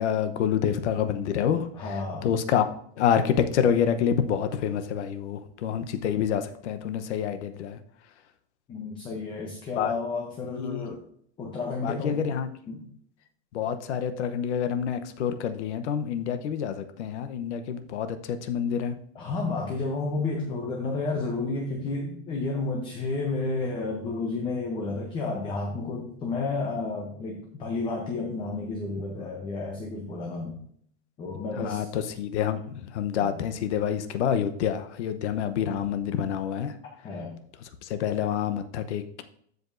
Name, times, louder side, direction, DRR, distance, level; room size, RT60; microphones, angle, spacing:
voice 1, 0.0-1.7 2.2-2.6 3.0-7.8 9.8-9.9 10.6-10.9 11.8-12.5 13.5-19.0 31.6-36.7 37.8-39.2, left 8 dB, 90° left, 9 dB, 0.9 m, -27 dB
voice 2, 1.7-2.3 8.7-11.0 11.4-12.3 12.7-12.9 19.1-30.6 31.2-31.9 37.0-37.4, left 3 dB, 15° left, 0 dB, 0.7 m, -31 dB
14.0 x 5.2 x 2.6 m, 0.64 s
supercardioid pair, 175°, 33 cm